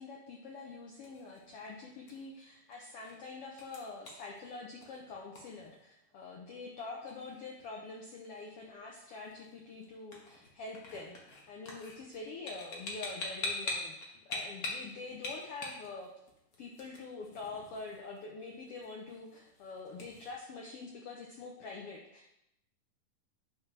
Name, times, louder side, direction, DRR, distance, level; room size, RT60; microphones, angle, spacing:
voice 1, 0.0-11.2 11.5-14.0 14.2-16.1 16.6-22.4, left 3 dB, 90° left, -1 dB, 1.3 m, -45 dB
sound 1, 0.7-20.3, left 2 dB, 45° left, 1.1 m, -46 dB
10.5 x 5.9 x 3.3 m, 0.81 s
omnidirectional pair, 3.8 m